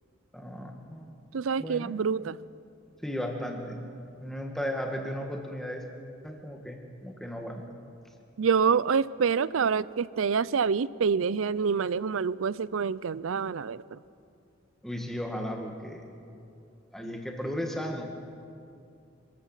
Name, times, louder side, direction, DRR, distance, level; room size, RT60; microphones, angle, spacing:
voice 1, 0.3-1.1 1.6-2.0 3.0-3.9 4.2-5.9 6.2-7.6 14.8-16.0 16.9-18.0, equal, ahead, 2 dB, 2.0 m, -35 dB
voice 2, 1.3-2.4 8.4-14.0, right 6 dB, 80° right, 20 dB, 0.5 m, -27 dB
26.0 x 13.5 x 7.4 m, 2.5 s
head